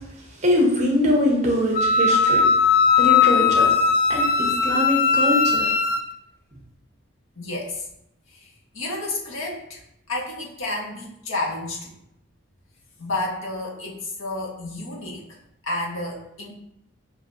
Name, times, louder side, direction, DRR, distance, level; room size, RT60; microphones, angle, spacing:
voice 1, 0.4-2.4 3.0-3.7 4.1-5.7, left 1 dB, 35° right, -2 dB, 1.0 m, -22 dB
Wind instrument woodwind instrument, 1.7-6.0, left 5 dB, 45° left, 0.3 m, -18 dB
voice 2, 7.4-7.9 8.3-9.8 10.1-11.9 13.0-15.2 15.6-16.5, left 2 dB, 80° left, -2 dB, 1.1 m, -31 dB
6.2 x 2.7 x 2.6 m, 0.81 s
head